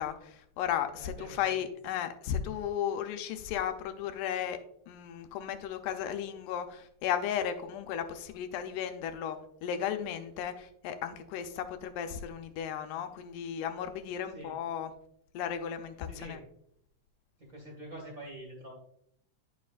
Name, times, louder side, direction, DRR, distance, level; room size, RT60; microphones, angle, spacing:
voice 1, 0.0-4.6 4.9-14.9 15.3-16.4, left 9 dB, 85° left, 8 dB, 2.2 m, -35 dB
voice 2, 1.0-1.6 14.3-14.6 16.0-16.4 17.4-18.7, right 1 dB, 35° right, -2 dB, 1.6 m, -46 dB
9.5 x 6.5 x 2.4 m, 0.70 s
omnidirectional pair, 3.6 m